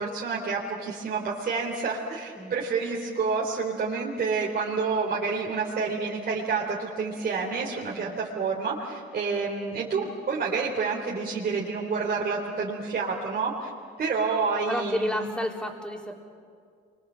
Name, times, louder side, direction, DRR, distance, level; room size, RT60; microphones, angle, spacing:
voice 1, 0.0-13.7 14.0-15.3, right 4 dB, 50° right, -4 dB, 3.9 m, -29 dB
voice 2, 14.7-16.2, left 1 dB, 5° left, 0 dB, 4.1 m, -31 dB
29.5 x 24.0 x 7.7 m, 2.3 s
cardioid pair, 90°, 20 cm